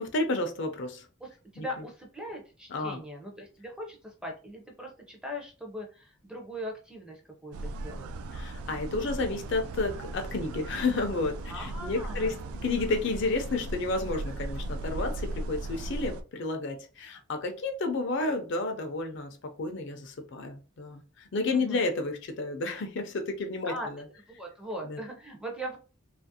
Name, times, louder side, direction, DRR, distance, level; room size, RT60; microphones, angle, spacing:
voice 1, 0.0-1.0 1.6-1.7 2.7-3.0 8.3-24.0 24.8-25.0, left 3 dB, 55° left, 5 dB, 0.4 m, -31 dB
voice 2, 1.2-8.1 11.5-12.4 21.5-21.8 23.6-24.0 24.4-25.8, equal, 5° right, 1 dB, 0.5 m, -40 dB
sound 1, 7.5-16.2, right 2 dB, 80° right, 0.3 m, -37 dB
2.8 x 2.4 x 2.7 m, 0.36 s
head